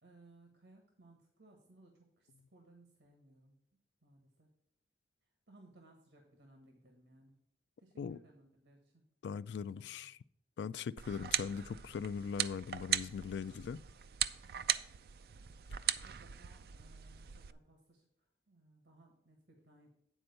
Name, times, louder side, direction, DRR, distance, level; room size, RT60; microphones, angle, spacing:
voice 1, 0.0-3.6 4.0-4.5 5.5-7.4 7.8-9.0 9.7-10.1 14.4-14.7 16.0-19.9, right 2 dB, 80° right, 1.4 m, -63 dB
voice 2, 9.2-10.2 10.6-13.8, left 6 dB, 80° left, 0.3 m, -40 dB
sound 1, 11.0-17.5, right 11 dB, 55° right, 0.3 m, -39 dB
9.1 x 4.3 x 6.6 m
head